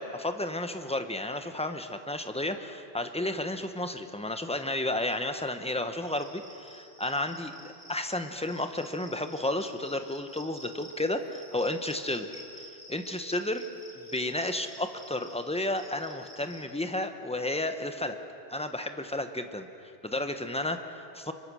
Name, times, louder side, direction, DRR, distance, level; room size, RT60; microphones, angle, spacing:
voice 1, 0.0-13.7 14.0-18.2 18.5-21.3, left 1 dB, 5° left, 7 dB, 1.1 m, -32 dB
Cricket, 6.0-16.6, equal, 25° left, 5.2 m, -51 dB
25.5 x 23.0 x 6.4 m, 2.6 s
omnidirectional pair, 1.1 m